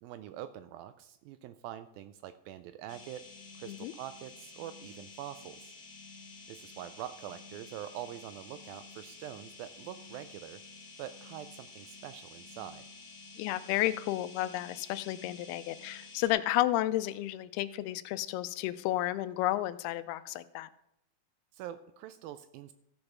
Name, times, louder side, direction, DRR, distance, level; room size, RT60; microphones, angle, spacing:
voice 1, 0.0-3.3 3.6-5.7 6.5-10.6 11.0-12.8 21.5-22.7, right 11 dB, 80° right, 11 dB, 2.1 m, -44 dB
sound 1, 2.9-16.3, left 4 dB, 30° left, 2.8 m, -51 dB
voice 2, 13.4-20.7, left 15 dB, 85° left, 14 dB, 2.5 m, -32 dB
14.5 x 5.4 x 5.9 m, 0.78 s
omnidirectional pair, 4.5 m